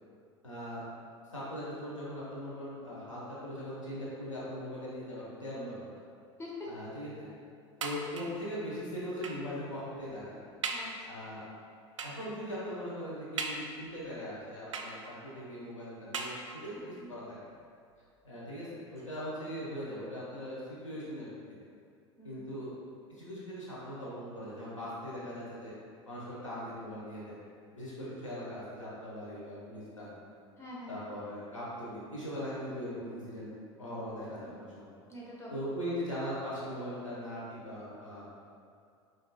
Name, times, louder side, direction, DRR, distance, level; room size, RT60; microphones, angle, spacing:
voice 1, 0.4-0.8 1.3-5.9 6.7-7.3 7.8-10.4 11.1-11.5 12.0-17.2 18.2-21.3 21.6-21.7 22.2-22.8 23.1-25.7 26.1-27.4 27.7-30.2 30.9-33.5 33.8-34.9 35.5-38.3, equal, 90° left, -8 dB, 1.2 m, -40 dB
voice 2, 6.4-6.7 10.7-11.2 17.0-17.1 22.2-22.4 30.6-30.9 35.1-35.5, left 1 dB, 15° left, -5 dB, 1.1 m, -45 dB
sound 1, 7.8-8.5 9.2-9.6 10.1-10.2 10.6-11.0 12.0-12.3 13.4-14.0 14.7-15.3 16.1-16.8 17.6-17.7 18.1-18.2, right 4 dB, 75° right, 0.4 m, -39 dB
4.9 x 4.1 x 2.3 m, 2.4 s
figure-of-eight pair, 80°, 16 cm